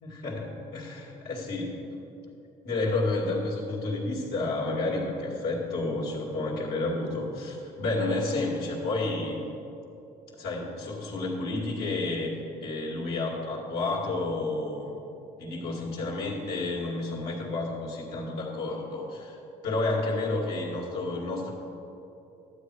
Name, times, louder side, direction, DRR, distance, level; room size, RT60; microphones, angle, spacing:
voice 1, 0.0-1.8 2.6-9.4 10.3-12.4 12.6-15.0 15.4-21.5, left 2 dB, 70° left, -4 dB, 2.3 m, -30 dB
12.0 x 8.0 x 4.8 m, 2.8 s
cardioid pair, 110°, 17 cm